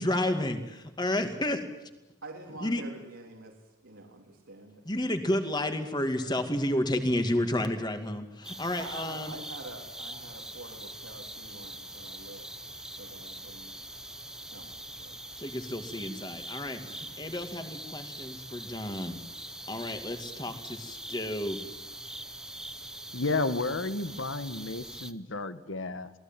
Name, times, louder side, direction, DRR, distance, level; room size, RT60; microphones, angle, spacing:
voice 1, 0.0-1.6 2.6-2.8 4.9-9.3 15.4-19.2 19.7-21.6, left 1 dB, 20° left, 7 dB, 2.4 m, -31 dB
voice 2, 2.2-4.8 8.8-12.5 12.8-13.7 14.5-15.1 16.7-17.1, right 2 dB, 80° right, -2 dB, 3.4 m, -46 dB
sound 1, 8.4-25.1, right 1 dB, 5° right, 0.9 m, -43 dB
voice 3, 23.1-26.1, left 3 dB, 70° left, 12 dB, 1.5 m, -32 dB
27.5 x 19.0 x 9.2 m, 1.0 s
head